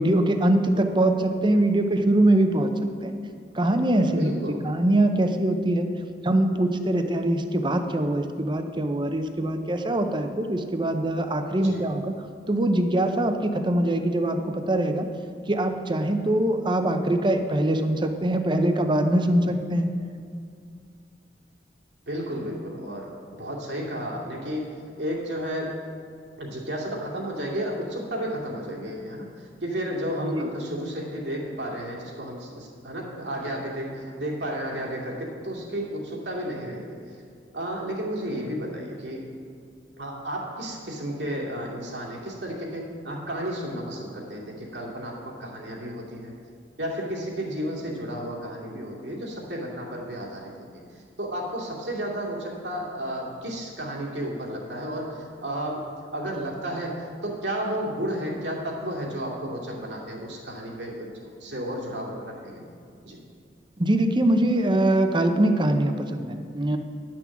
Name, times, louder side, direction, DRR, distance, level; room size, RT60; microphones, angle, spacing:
voice 1, 0.0-2.7 3.0-3.1 3.5-5.9 6.2-12.2 12.5-15.1 15.5-19.9 30.3-30.5 63.8-66.8, right 1 dB, 25° right, 7 dB, 0.7 m, -23 dB
voice 2, 4.2-4.6 11.6-11.9 19.4-19.6 22.1-24.7 25.0-25.8 26.4-37.2 37.5-39.2 40.0-46.3 46.8-55.8 56.1-62.7 63.0-63.2, equal, 90° right, -3 dB, 2.4 m, -32 dB
10.5 x 6.1 x 7.1 m, 2.3 s
head